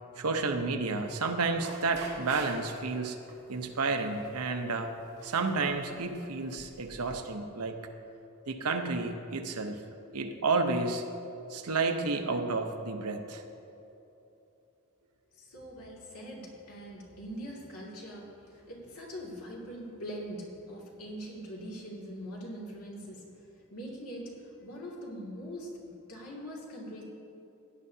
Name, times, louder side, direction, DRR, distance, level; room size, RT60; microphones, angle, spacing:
voice 1, 0.2-3.2 3.5-4.9 5.2-7.8 8.5-9.9 10.1-11.0 11.5-13.4, right 3 dB, 85° right, 5 dB, 0.8 m, -31 dB
sound 1, 1.5-2.9 3.3-3.6 4.0-4.4 5.0-5.9 6.6-7.1, right 3 dB, 50° right, 2.2 m, -46 dB
voice 2, 15.3-23.4 23.7-27.0, equal, 90° left, -4 dB, 2.4 m, -42 dB
16.5 x 10.5 x 2.8 m, 3.0 s
head